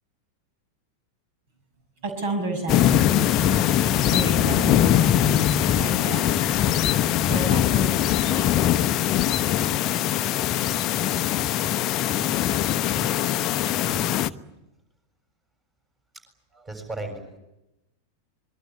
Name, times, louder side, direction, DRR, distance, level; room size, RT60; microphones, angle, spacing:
voice 1, 2.0-3.5 3.9-8.6, right 2 dB, 50° right, 7 dB, 6.1 m, -33 dB
sound 1, 2.7-14.3, left 11 dB, 35° left, 0.9 m, -22 dB
voice 2, 13.8-14.2 16.5-17.4, right 2 dB, 15° right, 6 dB, 7.2 m, -36 dB
26.0 x 22.5 x 9.7 m, 0.93 s
figure-of-eight pair, 90°, 0 cm